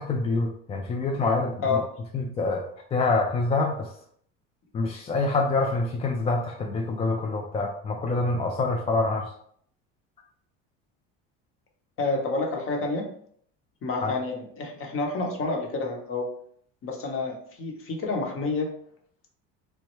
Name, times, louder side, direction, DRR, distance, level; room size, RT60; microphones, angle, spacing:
voice 1, 0.0-1.8 2.1-3.9 4.7-9.3 14.0-14.1, left 3 dB, 20° left, 1 dB, 0.3 m, -26 dB
voice 2, 12.0-13.0 13.8-16.3 16.8-18.7, left 3 dB, 45° left, 2 dB, 0.9 m, -29 dB
3.2 x 2.2 x 3.0 m, 0.62 s
supercardioid pair, 100°, 31 cm